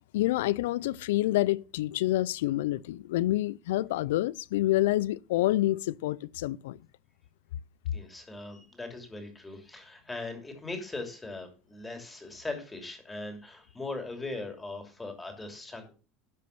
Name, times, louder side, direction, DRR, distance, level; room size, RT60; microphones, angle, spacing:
voice 1, 0.1-6.8, left 16 dB, 90° left, 0.4 m, -27 dB
voice 2, 7.9-15.9, left 2 dB, 15° left, 2.9 m, -40 dB
12.0 x 5.2 x 5.9 m
supercardioid pair, 115°, 0 cm